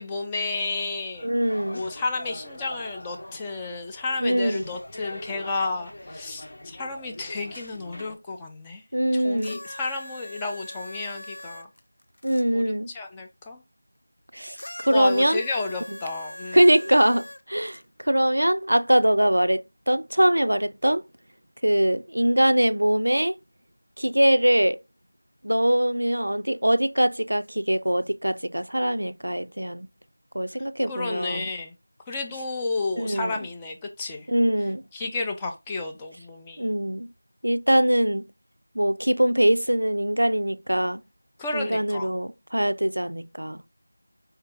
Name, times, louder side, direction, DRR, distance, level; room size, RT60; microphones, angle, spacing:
voice 1, 0.0-1.3 1.7-8.8 9.1-11.7 12.5-13.6 14.9-16.6 30.9-31.7 32.1-34.3 34.9-36.7 41.4-42.1, left 3 dB, 10° left, 0.4 m, -32 dB
sound 1, 1.1-8.1, left 1 dB, 55° left, 0.9 m, -42 dB
voice 2, 1.2-1.8 4.2-4.7 8.9-9.6 12.2-12.9 14.3-15.4 15.9-16.0 16.5-21.0 21.6-23.4 24.0-24.8 25.4-29.9 30.3-31.5 33.0-33.3 34.3-34.8 36.6-37.1 37.4-38.3 38.8-41.0 41.5-43.6, right 1 dB, 85° right, 0.4 m, -22 dB
sound 2, 9.4-12.4 14.5-17.8 18.7-18.8, left 1 dB, 75° left, 0.5 m, -41 dB
4.4 x 2.8 x 3.5 m
figure-of-eight pair, 170°, 0 cm